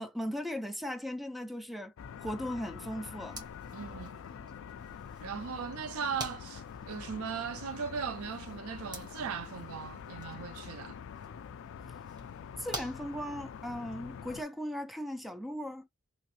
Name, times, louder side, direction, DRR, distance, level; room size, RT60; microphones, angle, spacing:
voice 1, 0.0-1.9 2.2-3.5 12.6-15.9, equal, ahead, 0.4 m, -37 dB
sound 1, 2.0-14.4, left 7 dB, 65° left, 0.3 m, -45 dB
sound 2, 3.2-13.8, right 1 dB, 20° right, 1.1 m, -49 dB
voice 2, 3.7-4.2 5.2-11.0, right 6 dB, 80° right, 0.5 m, -38 dB
3.1 x 2.9 x 2.5 m
head